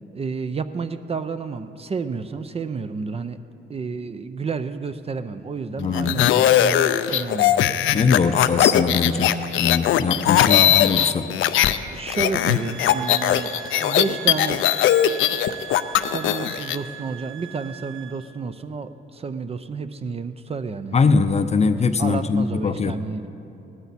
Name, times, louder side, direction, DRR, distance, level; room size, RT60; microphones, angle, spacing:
voice 1, 0.1-3.4 3.7-7.7 10.5-10.7 11.9-14.6 16.0-21.0 22.0-23.3, right 4 dB, 30° right, 11 dB, 0.5 m, -30 dB
voice 2, 5.8-6.2 7.9-11.3 20.9-23.0, left 5 dB, 35° left, 10 dB, 0.5 m, -21 dB
sound 1, 5.9-11.8 12.1-16.8, left 11 dB, 80° left, 0.5 m, -19 dB
sound 2, 12.4-18.3, right 8 dB, 80° right, 0.7 m, -39 dB
18.0 x 12.5 x 4.1 m, 2.9 s
cardioid pair, 90°, 20 cm